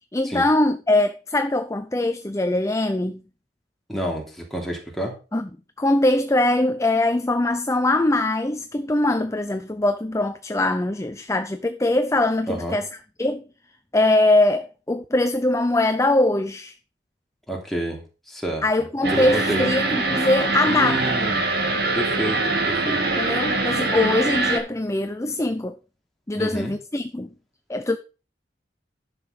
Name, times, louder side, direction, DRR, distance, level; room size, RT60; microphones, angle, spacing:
voice 1, 0.1-3.2 5.3-5.5 5.8-12.9 13.2-13.4 13.9-16.7 18.6-21.0 23.2-25.8 26.3-27.3 27.7-28.0, left 2 dB, 15° left, 0.6 m, -22 dB
voice 2, 3.9-5.1 12.5-12.8 17.5-18.0 18.3-18.6 19.1-19.7 20.7-21.5 21.9-23.4 26.3-26.7, right 1 dB, ahead, 3.1 m, -29 dB
sound 1, 19.0-24.6, right 2 dB, 60° right, 2.3 m, -23 dB
10.5 x 6.7 x 5.1 m
head